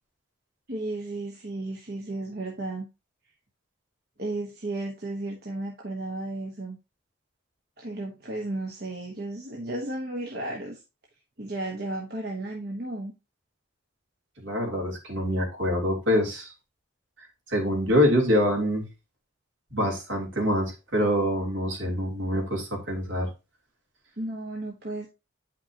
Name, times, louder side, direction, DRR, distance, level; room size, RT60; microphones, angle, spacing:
voice 1, 0.7-2.9 4.2-6.8 7.8-10.8 11.4-13.1 24.2-25.1, right 2 dB, 55° right, 0 dB, 1.2 m, -34 dB
voice 2, 14.4-16.5 17.5-18.8 19.7-23.3, equal, 75° right, 0 dB, 3.1 m, -25 dB
9.0 x 5.8 x 2.9 m, 0.26 s
head